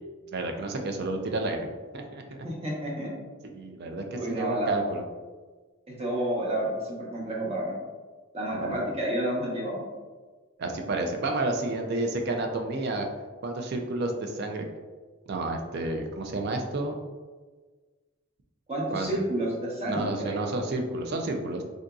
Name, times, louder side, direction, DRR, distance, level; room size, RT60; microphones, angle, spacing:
voice 1, 0.3-2.2 3.5-5.0 8.5-8.8 10.6-13.1 13.4-14.6 15.3-17.0 18.9-19.1 19.8-21.6, right 2 dB, 50° right, 4 dB, 0.4 m, -30 dB
voice 2, 2.4-3.1 4.1-4.7 6.0-7.7 8.3-9.8 18.7-20.4, right 1 dB, 30° right, -4 dB, 0.8 m, -30 dB
3.7 x 2.6 x 2.3 m, 1.4 s
head